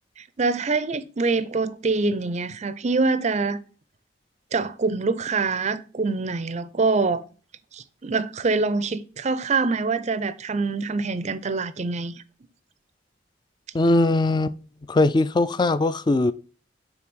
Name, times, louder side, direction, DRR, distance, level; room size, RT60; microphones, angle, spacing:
voice 1, 0.2-3.6 4.5-7.2 7.7-12.1, right 4 dB, 35° right, 0.5 m, -25 dB
voice 2, 13.7-14.6 14.9-16.3, left 2 dB, 25° left, 0.3 m, -20 dB
6.0 x 3.8 x 6.2 m
head